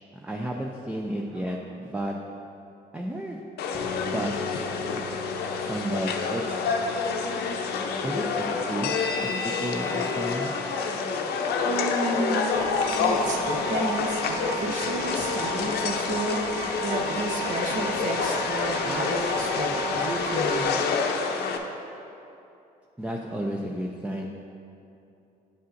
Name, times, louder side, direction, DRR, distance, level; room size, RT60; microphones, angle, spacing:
voice 1, 0.2-2.2 2.9-3.4 4.0-4.4 5.7-6.6 8.0-8.9 9.2-10.5 23.0-24.3, right 1 dB, 5° right, 0 dB, 0.4 m, -32 dB
sound 1, 3.6-21.6, left 5 dB, 70° left, 0.6 m, -28 dB
sound 2, 3.7-11.2, left 4 dB, 35° left, 0.8 m, -40 dB
voice 2, 11.6-12.5 12.9-16.4 16.8-20.8, right 2 dB, 45° right, 0 dB, 0.8 m, -31 dB
sound 3, 12.5-20.6, right 4 dB, 85° right, 0.6 m, -36 dB
10.0 x 5.5 x 2.6 m, 2.7 s
cardioid pair, 110°, 17 cm